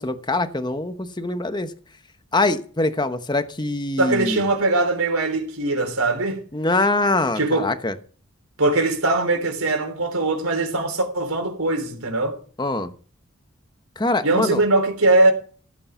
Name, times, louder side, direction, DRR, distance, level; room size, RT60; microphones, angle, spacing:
voice 1, 0.0-1.7 2.3-4.5 6.5-7.9 12.6-12.9 14.0-14.6, left 2 dB, 20° left, 1.0 m, -23 dB
voice 2, 4.0-6.4 7.4-7.7 8.6-12.4 14.2-15.3, right 2 dB, 85° right, 3.6 m, -21 dB
16.0 x 8.6 x 5.8 m
head